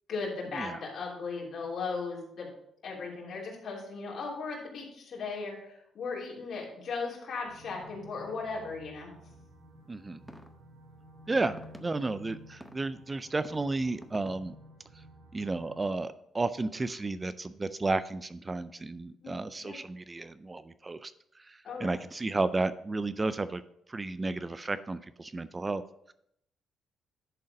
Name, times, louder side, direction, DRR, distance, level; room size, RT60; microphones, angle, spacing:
voice 1, 0.1-2.5 2.8-9.1 11.4-11.5 19.2-19.3 19.6-19.8 21.6-22.0, left 4 dB, 60° left, -3 dB, 3.2 m, -37 dB
sound 1, 7.4-15.9, equal, 75° right, 2.5 m, -52 dB
voice 2, 9.9-10.2 11.3-14.6 15.3-23.6 23.9-25.8 26.1-26.2, right 3 dB, 25° right, 14 dB, 0.4 m, -33 dB
sound 2, 10.3-10.5 11.6-11.8 12.6-12.8 13.4-13.6 14.0-14.3, equal, 5° right, 0.8 m, -47 dB
10.5 x 3.9 x 5.2 m, 0.74 s
cardioid pair, 90°, 0 cm